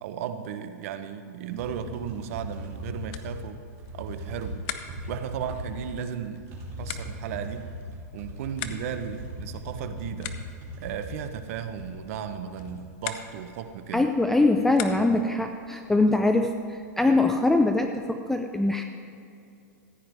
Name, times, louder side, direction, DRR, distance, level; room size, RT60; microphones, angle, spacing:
voice 1, 0.0-3.6 3.9-4.6 5.1-6.5 6.8-7.8 8.1-10.4 10.8-14.1, right 8 dB, 55° right, 10 dB, 0.8 m, -35 dB
sound 1, 1.5-14.0 14.3-14.4 14.6-16.4 16.8-16.9 17.2-18.0, equal, 35° right, 3.0 m, -39 dB
sound 2, 3.0-15.4, left 10 dB, 40° left, 0.7 m, -43 dB
voice 2, 13.9-18.8, left 2 dB, 5° left, 5 dB, 0.3 m, -23 dB
14.5 x 9.5 x 3.4 m, 2.6 s
supercardioid pair, 150°, 9 cm